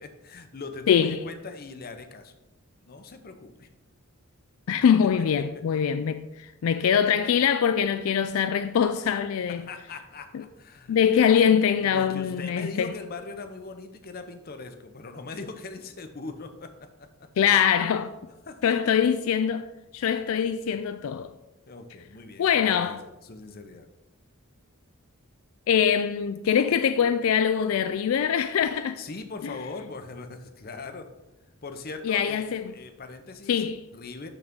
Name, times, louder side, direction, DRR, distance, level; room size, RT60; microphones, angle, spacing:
voice 1, 0.0-2.3 2.8-3.7 4.7-4.9 5.5-5.6 9.5-11.0 11.5-11.6 11.8-17.3 18.5-18.7 21.7-23.9 29.0-31.1 31.6-34.3, left 3 dB, 45° left, 0.7 m, -40 dB
voice 2, 0.9-1.2 4.7-9.6 10.3-10.4 10.9-12.9 17.4-18.1 18.6-21.3 22.4-23.0 25.7-29.0 29.4-29.5 32.0-32.6 33.5-33.8, left 8 dB, 75° left, 0.3 m, -23 dB
11.5 x 4.0 x 3.7 m
head